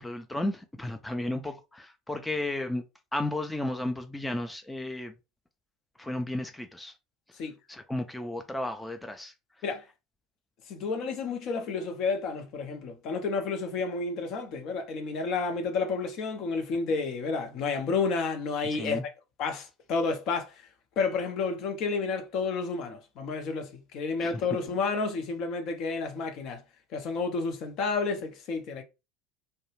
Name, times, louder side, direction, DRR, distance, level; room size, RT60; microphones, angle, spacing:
voice 1, 0.0-2.8 3.1-5.1 6.0-6.9 7.7-9.3 18.7-19.0 24.2-24.5, left 1 dB, 10° left, 0.4 m, -33 dB
voice 2, 10.7-19.0 19.4-20.7 21.0-26.6 26.9-28.8, left 4 dB, 50° left, 0.6 m, -30 dB
2.3 x 2.1 x 3.0 m
figure-of-eight pair, 70°, 0 cm